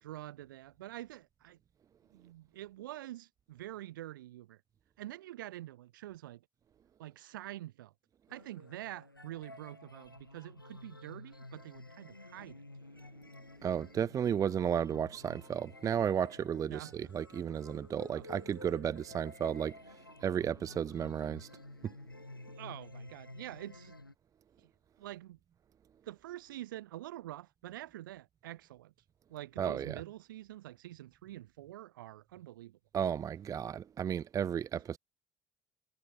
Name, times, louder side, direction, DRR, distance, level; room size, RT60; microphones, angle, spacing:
voice 1, 0.0-1.6 2.1-4.6 5.0-6.4 7.0-7.9 8.3-12.6 16.7-16.9 18.1-18.3 22.6-24.0 24.6-24.7 25.0-25.4 26.0-28.9 29.3-32.8 34.7-34.8, right 14 dB, 70° right, 3.3 m, -46 dB
sound 1, 8.3-24.1, left 2 dB, 90° left, 5.4 m, -52 dB
voice 2, 13.6-19.7 20.2-21.5 29.6-30.0 32.9-35.0, right 8 dB, 30° right, 0.4 m, -33 dB
figure-of-eight pair, 55°, 11 cm